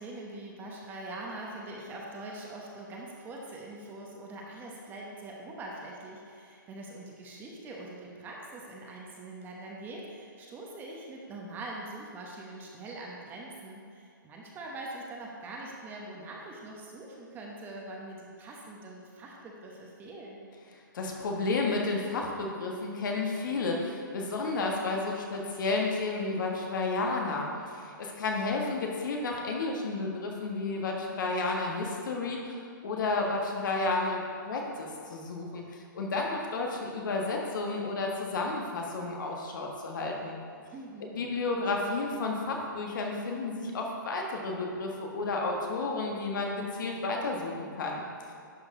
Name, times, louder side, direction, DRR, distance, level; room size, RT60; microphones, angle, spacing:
voice 1, 0.0-20.5 40.7-41.2, right 2 dB, 15° right, -2 dB, 1.0 m, -43 dB
voice 2, 20.9-40.4 41.1-48.0, left 3 dB, 65° left, 0 dB, 1.5 m, -32 dB
11.0 x 4.5 x 3.8 m, 2.4 s
hypercardioid pair, 145°, 11 cm